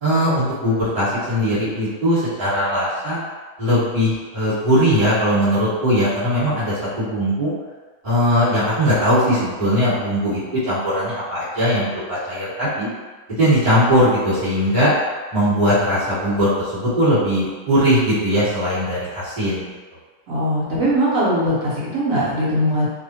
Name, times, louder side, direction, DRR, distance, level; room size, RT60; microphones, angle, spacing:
voice 1, 0.0-3.2 3.6-7.5 8.0-12.9 13.3-14.9 15.3-19.6, equal, 30° right, -11 dB, 1.3 m, -19 dB
voice 2, 20.3-22.9, equal, 60° right, -7 dB, 1.0 m, -20 dB
2.8 x 2.1 x 2.7 m, 1.3 s
omnidirectional pair, 1.8 m